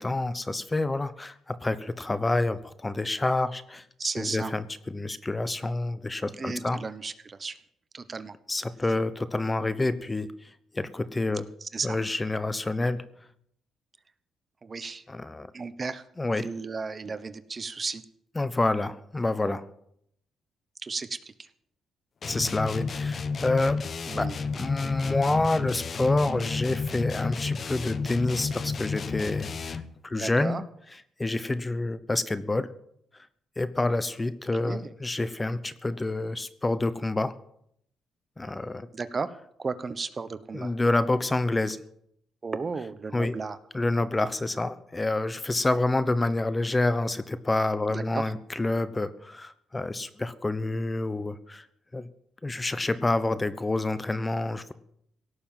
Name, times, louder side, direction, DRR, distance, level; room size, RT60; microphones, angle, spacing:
voice 1, 0.0-3.8 4.2-6.8 8.5-11.5 11.8-13.0 15.1-15.5 16.2-16.5 18.4-19.6 22.2-23.8 24.2-30.6 31.2-32.7 33.6-37.3 38.4-38.9 40.5-41.8 43.1-43.3 43.7-51.7 51.9-52.1 52.4-54.7, left 2 dB, 20° left, 14 dB, 0.9 m, -28 dB
voice 2, 4.0-4.5 6.4-7.6 7.9-8.4 11.6-12.0 14.6-15.0 15.5-16.0 16.4-18.0 19.4-19.6 20.8-21.5 24.1-24.3 30.1-30.6 34.6-34.9 38.9-39.3 39.6-40.7 42.4-43.6 46.0-46.1 47.9-48.3, right 4 dB, 35° right, 13 dB, 1.0 m, -34 dB
sound 1, 22.2-30.0, left 4 dB, 45° left, 1.0 m, -32 dB
17.5 x 7.0 x 9.0 m, 0.72 s
cardioid pair, 90°, 0 cm